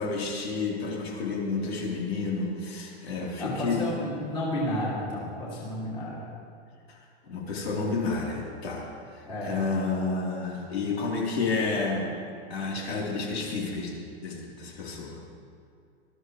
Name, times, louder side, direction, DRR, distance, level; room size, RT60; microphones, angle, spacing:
voice 1, 0.0-3.9 6.9-7.0 7.2-8.9 9.1-12.1 12.5-15.2, left 4 dB, 75° left, -3 dB, 3.7 m, -30 dB
voice 2, 3.4-6.2 9.3-9.6, left 1 dB, 15° left, -6 dB, 2.3 m, -32 dB
19.5 x 13.0 x 3.2 m, 2.4 s
supercardioid pair, 175°, 32 cm